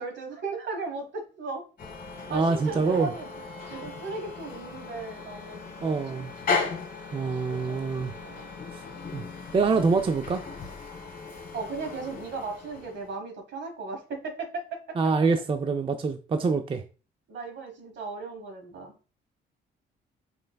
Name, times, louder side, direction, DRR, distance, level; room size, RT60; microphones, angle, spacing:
voice 1, 0.0-1.6 2.3-3.4 3.7-6.3 7.5-8.7 11.5-15.1 17.3-18.9, right 3 dB, 65° right, 1.2 m, -36 dB
sound 1, 1.8-13.2, left 4 dB, 45° left, 1.3 m, -37 dB
voice 2, 2.3-3.1 5.8-6.3 7.1-8.1 9.1-9.2 9.5-10.4 15.0-16.8, right 4 dB, 25° right, 0.4 m, -25 dB
4.4 x 3.2 x 2.3 m
cardioid pair, 90°, 20 cm